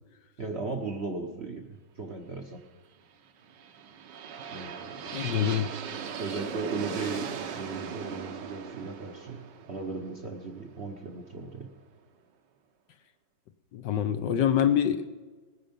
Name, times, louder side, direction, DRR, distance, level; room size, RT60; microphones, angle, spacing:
voice 1, 0.4-2.6 4.5-5.0 5.3-5.6 6.2-9.4 9.7-11.7, right 3 dB, 45° right, 4 dB, 1.0 m, -37 dB
sound 1, 3.4-11.4, right 7 dB, 65° right, 1.6 m, -39 dB
voice 2, 5.1-5.7 13.7-15.1, left 9 dB, 70° left, 10 dB, 1.3 m, -25 dB
19.0 x 10.5 x 5.3 m, 1.3 s
omnidirectional pair, 2.2 m